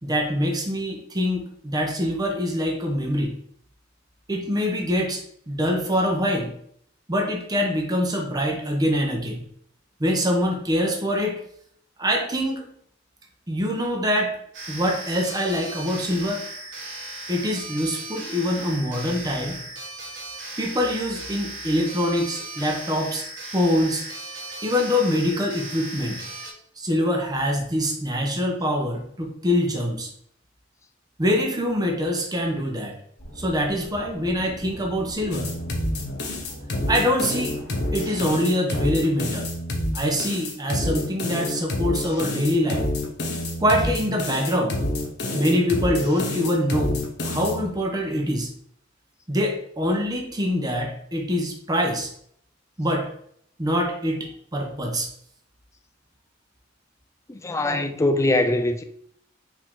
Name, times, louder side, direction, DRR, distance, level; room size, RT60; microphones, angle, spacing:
voice 1, 0.0-3.3 4.3-5.2 5.5-6.5 7.1-9.4 10.0-11.4 12.0-12.7 13.5-14.3 14.7-16.4 17.3-19.6 20.6-23.2 23.5-24.0 24.6-26.2 26.8-30.1 31.2-32.9 33.4-35.5 36.9-37.6 37.9-39.5 39.9-42.9 43.6-44.8 45.3-48.5 49.3-52.1 52.8-53.1 53.6-55.1, equal, 20° right, 0.8 m, -24 dB
sound 1, 14.5-26.5, right 2 dB, 70° right, 1.3 m, -37 dB
sound 2, 33.2-38.3, equal, 75° left, 1.6 m, -41 dB
sound 3, 35.3-47.7, left 1 dB, 60° left, 0.8 m, -28 dB
voice 2, 57.3-58.8, left 2 dB, 15° left, 0.3 m, -22 dB
4.8 x 2.8 x 3.7 m
head